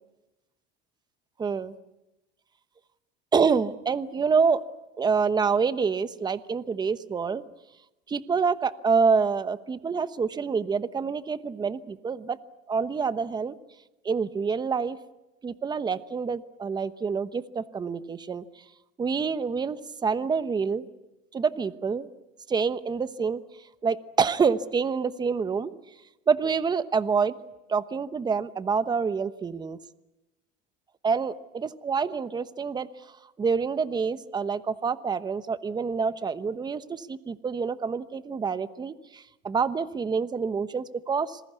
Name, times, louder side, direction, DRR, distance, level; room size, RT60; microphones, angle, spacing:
voice 1, 1.4-1.7 3.3-4.6 5.0-7.4 8.1-12.4 12.7-13.5 14.0-15.0 15.4-18.4 19.0-20.9 21.3-22.1 22.5-23.4 23.8-25.7 26.3-27.3 27.7-29.8 31.0-32.9 33.4-41.4, right 5 dB, 20° right, 13 dB, 1.0 m, -27 dB
26.5 x 21.5 x 8.2 m, 0.96 s
cardioid pair, 125°, 20 cm